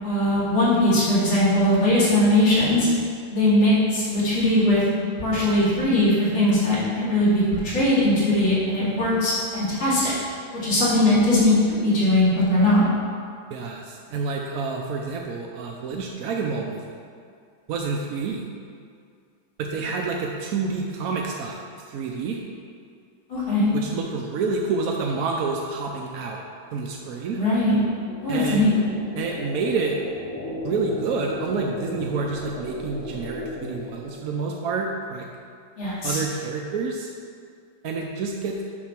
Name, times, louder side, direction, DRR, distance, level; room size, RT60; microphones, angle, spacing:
voice 1, 0.0-2.9 3.3-4.8 5.2-10.1 10.5-12.8 23.3-23.7 27.3-27.8 28.2-28.7 35.8-36.2, left 1 dB, 80° left, -9 dB, 3.1 m, -20 dB
voice 2, 13.5-17.0 17.7-18.5 19.6-22.4 23.7-26.4 26.7-27.4 28.3-28.6 29.2-30.0 30.6-35.3 36.0-37.1 37.8-38.6, right 4 dB, 70° right, 0 dB, 0.8 m, -28 dB
sound 1, 25.9-34.7, left 2 dB, 45° left, 1.4 m, -37 dB
6.5 x 6.1 x 5.8 m, 2.2 s
omnidirectional pair, 2.1 m